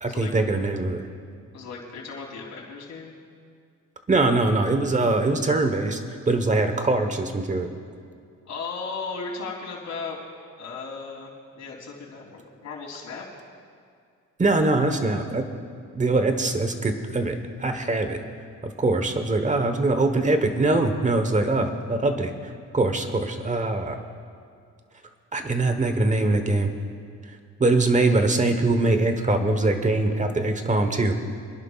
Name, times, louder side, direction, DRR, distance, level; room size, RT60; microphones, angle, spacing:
voice 1, 0.0-1.0 4.1-6.0 6.3-7.7 14.4-15.4 15.9-18.2 18.6-22.3 22.7-24.0 25.3-26.7 27.6-31.1, right 2 dB, 25° right, 7 dB, 1.2 m, -22 dB
voice 2, 1.5-3.1 8.4-10.2 10.6-13.2, left 4 dB, 65° left, -2 dB, 3.4 m, -36 dB
26.5 x 11.0 x 2.5 m, 2.3 s
cardioid pair, 90°, 30 cm